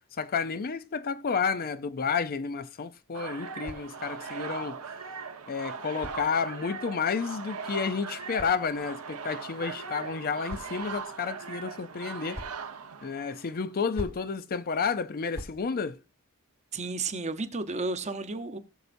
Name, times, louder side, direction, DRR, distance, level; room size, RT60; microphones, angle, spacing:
voice 1, 0.2-4.8 5.5-12.4 13.0-16.0, left 5 dB, 40° left, 0.5 m, -31 dB
sound 1, 3.1-13.6, right 5 dB, 75° right, 1.0 m, -39 dB
sound 2, 5.8-6.8 7.8-9.2 10.0-11.0 12.0-12.7 13.7-14.3 15.1-15.6, equal, 25° left, 1.5 m, -46 dB
voice 2, 16.7-18.6, right 3 dB, 30° right, 0.9 m, -32 dB
18.5 x 6.6 x 2.6 m
head